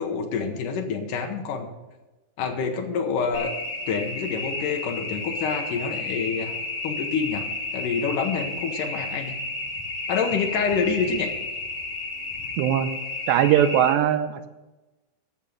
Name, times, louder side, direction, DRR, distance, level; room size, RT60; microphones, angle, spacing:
voice 1, 0.0-1.7 2.4-3.5 3.9-6.5 6.8-7.5 7.7-9.4 10.1-11.3, left 5 dB, 70° left, 4 dB, 2.2 m, -27 dB
sound 1, 3.3-13.9, left 2 dB, 55° left, 4.3 m, -32 dB
voice 2, 12.6-12.9 13.3-14.5, right 10 dB, 85° right, 11 dB, 2.9 m, -20 dB
12.5 x 7.3 x 6.6 m, 1.1 s
omnidirectional pair, 4.9 m